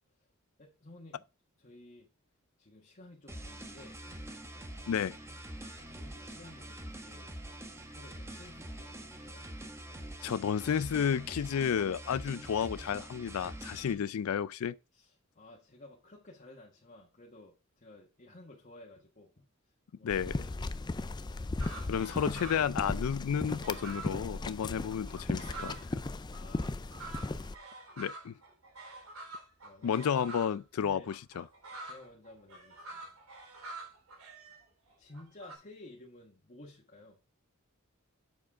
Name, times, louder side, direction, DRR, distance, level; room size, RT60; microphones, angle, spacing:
voice 1, 0.6-1.3 1.6-2.1 2.6-4.0 4.8-5.0 5.8-7.3 7.9-9.5 14.9-19.5 19.9-21.1 26.3-27.3 29.6-30.0 30.8-31.1 31.7-33.1 34.5-34.6 35.0-37.2, left 2 dB, 40° left, 1.4 m, -54 dB
sound 1, 3.3-13.9, right 1 dB, 15° right, 1.2 m, -45 dB
voice 2, 10.2-14.8 20.0-20.5 21.9-26.0 28.0-28.3 29.8-31.4, left 8 dB, 85° left, 0.4 m, -32 dB
sound 2, 20.1-27.6, left 2 dB, 20° left, 0.4 m, -37 dB
sound 3, 21.6-22.8 23.1-25.9 26.3-30.6 31.1-35.6, right 3 dB, 80° right, 3.1 m, -47 dB
7.7 x 6.6 x 3.6 m
head